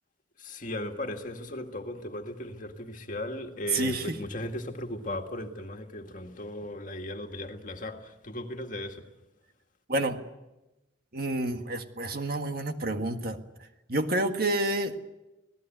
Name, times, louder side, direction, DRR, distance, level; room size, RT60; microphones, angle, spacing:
voice 1, 0.4-9.1, left 1 dB, 40° left, 2.1 m, -37 dB
voice 2, 3.7-4.2 9.9-10.2 11.1-13.4 13.9-15.0, right 1 dB, 50° right, 1.7 m, -29 dB
26.5 x 18.0 x 9.3 m
head